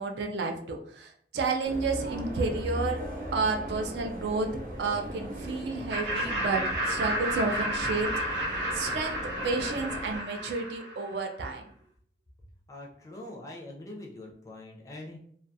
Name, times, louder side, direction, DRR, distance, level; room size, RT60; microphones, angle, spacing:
voice 1, 0.0-3.0 3.3-4.5 4.8-8.1 8.7-9.2 9.4-11.7, right 3 dB, 65° right, 3 dB, 0.4 m, -31 dB
sound 1, 1.6-10.2, right 1 dB, 50° right, 0.8 m, -38 dB
Laughter, 5.9-11.2, right 1 dB, 90° right, 0.8 m, -32 dB
voice 2, 12.7-15.2, left 1 dB, 20° left, -2 dB, 0.4 m, -43 dB
2.3 x 2.2 x 2.6 m, 0.63 s
head